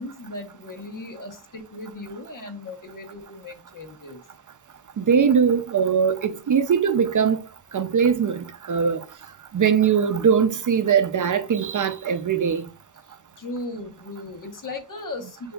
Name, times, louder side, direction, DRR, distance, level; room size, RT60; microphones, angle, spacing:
voice 1, 0.0-4.2 13.4-15.5, left 2 dB, 55° left, 1.1 m, -37 dB
voice 2, 5.0-7.4 7.7-9.0 9.5-12.6, right 7 dB, 55° right, 0.5 m, -21 dB
7.6 x 2.7 x 2.3 m
wide cardioid pair, 80°, 38 cm